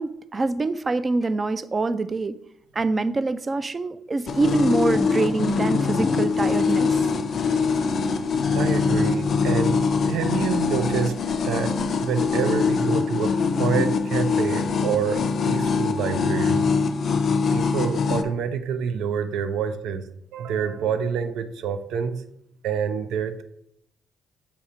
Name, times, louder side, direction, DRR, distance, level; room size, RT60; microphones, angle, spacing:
voice 1, 0.0-2.4 2.7-7.1, right 3 dB, 30° right, 13 dB, 0.4 m, -25 dB
sound 1, 4.3-18.2, left 5 dB, 55° left, 0.5 m, -23 dB
voice 2, 8.5-11.1 11.4-11.7 12.0-13.3 13.6-16.7 17.5-20.0 20.3-22.2 22.6-23.4, right 7 dB, 85° right, 10 dB, 0.6 m, -27 dB
7.0 x 2.9 x 4.9 m, 0.73 s
cardioid pair, 90°, 0 cm